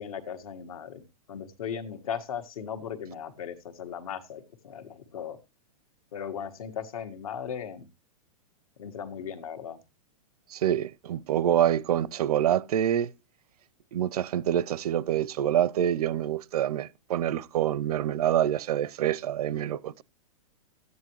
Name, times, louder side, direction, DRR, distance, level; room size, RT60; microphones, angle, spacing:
voice 1, 0.0-5.4 6.1-7.9 8.8-9.8, left 8 dB, 70° left, 1.8 m, -37 dB
voice 2, 10.5-13.1 13.9-20.0, right 10 dB, 90° right, 0.6 m, -26 dB
14.0 x 9.6 x 3.1 m
supercardioid pair, 180°, 19 cm